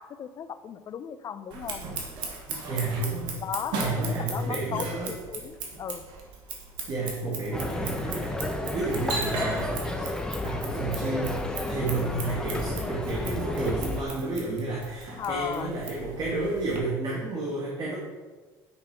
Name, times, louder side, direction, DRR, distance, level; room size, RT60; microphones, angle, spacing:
voice 1, 0.0-1.9 3.4-6.1 15.2-15.7, left 8 dB, 45° left, 12 dB, 0.6 m, -36 dB
Scissors, 1.5-16.8, right 4 dB, 70° right, 1.9 m, -38 dB
voice 2, 2.5-3.4 3.8-5.1 6.9-10.0 10.4-18.0, right 2 dB, 50° right, -4 dB, 2.3 m, -31 dB
sound 1, 7.5-14.0, left 2 dB, 10° left, 1.1 m, -32 dB
9.7 x 5.7 x 4.5 m, 1.3 s
supercardioid pair, 95°, 8 cm